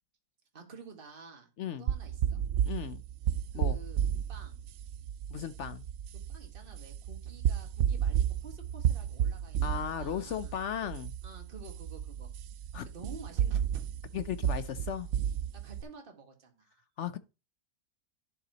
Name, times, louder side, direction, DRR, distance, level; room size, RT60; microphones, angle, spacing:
voice 1, 0.5-1.5 1.8-2.4 3.5-4.0 4.3-4.6 6.3-9.7 10.0-10.6 11.2-12.3 12.9-13.9 15.5-16.8, right 4 dB, 35° right, 1.9 m, -50 dB
voice 2, 1.6-1.9 2.6-3.0 3.5-3.8 5.3-5.8 9.6-11.1 12.7-12.9 14.1-15.1 17.0-17.2, left 9 dB, 60° left, 0.8 m, -36 dB
sound 1, 1.9-15.8, right 9 dB, 65° right, 0.7 m, -32 dB
11.5 x 6.8 x 2.9 m
omnidirectional pair, 1.6 m